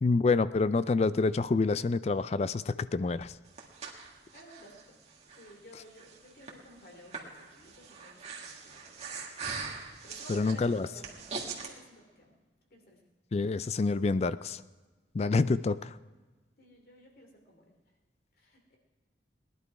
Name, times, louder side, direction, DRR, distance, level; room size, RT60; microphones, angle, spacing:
voice 1, 0.0-3.3 10.3-10.9 13.3-14.6 15.1-15.9, left 3 dB, 35° left, 15 dB, 0.3 m, -27 dB
Breathing, 3.2-11.7, right 5 dB, 35° right, 1.8 m, -43 dB
voice 2, 4.3-5.0 5.4-9.0 10.0-12.3 12.7-13.1 13.4-13.5 16.6-17.7 18.4-18.8, equal, 55° left, 2 dB, 2.7 m, -54 dB
19.0 x 11.0 x 4.7 m, 1.3 s
head